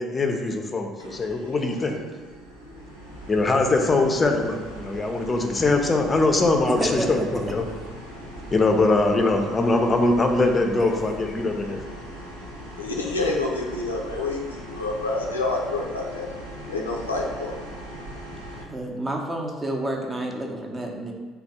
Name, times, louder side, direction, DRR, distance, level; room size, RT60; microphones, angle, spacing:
voice 1, 0.0-2.0 3.3-7.6 8.5-11.8, left 2 dB, 25° left, 4 dB, 0.5 m, -22 dB
sound 1, 1.0-18.6, equal, 85° right, 0.6 m, -40 dB
voice 2, 6.6-7.4 10.8-10.9 18.7-21.1, right 1 dB, 20° right, 1 dB, 0.6 m, -29 dB
voice 3, 12.8-16.3 16.7-17.7, left 2 dB, 80° left, -1 dB, 0.4 m, -28 dB
3.3 x 2.3 x 4.2 m, 1.4 s
figure-of-eight pair, 55°, 0 cm